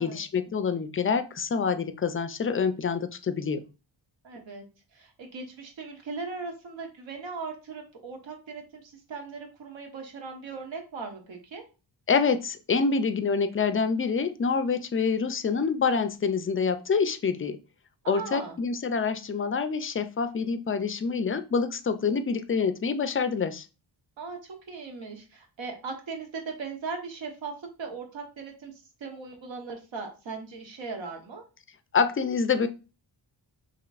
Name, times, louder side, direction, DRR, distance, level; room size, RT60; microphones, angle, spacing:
voice 1, 0.0-3.6 12.1-17.6 18.1-23.7 31.9-32.7, left 5 dB, 30° left, 10 dB, 0.3 m, -26 dB
voice 2, 4.2-4.6 4.9-11.6 18.0-18.6 24.2-31.4, right 4 dB, 80° right, 3 dB, 1.2 m, -39 dB
5.7 x 3.0 x 2.4 m, 0.32 s
wide cardioid pair, 130°, 45 cm